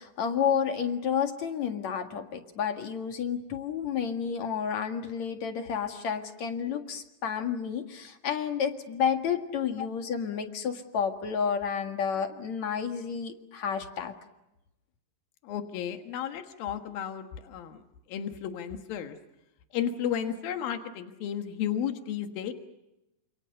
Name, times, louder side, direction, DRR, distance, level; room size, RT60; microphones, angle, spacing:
voice 1, 0.0-14.1, left 7 dB, 55° left, 5 dB, 3.0 m, -30 dB
voice 2, 15.4-17.8 18.1-19.2 19.7-22.5, left 9 dB, 85° left, 6 dB, 3.3 m, -33 dB
28.5 x 28.0 x 6.6 m, 0.93 s
omnidirectional pair, 4.0 m